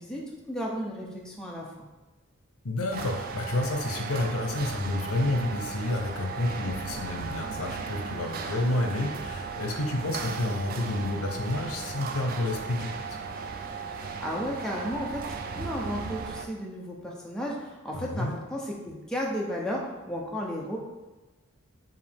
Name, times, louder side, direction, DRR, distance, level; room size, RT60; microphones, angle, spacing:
voice 1, 0.0-1.7 14.2-20.8, equal, 5° left, -3 dB, 0.6 m, -34 dB
voice 2, 2.6-13.0 17.9-18.4, left 2 dB, 90° left, 3 dB, 0.7 m, -30 dB
sound 1, 2.9-16.5, right 5 dB, 45° right, 0.3 m, -36 dB
4.9 x 2.7 x 3.5 m, 1.2 s
head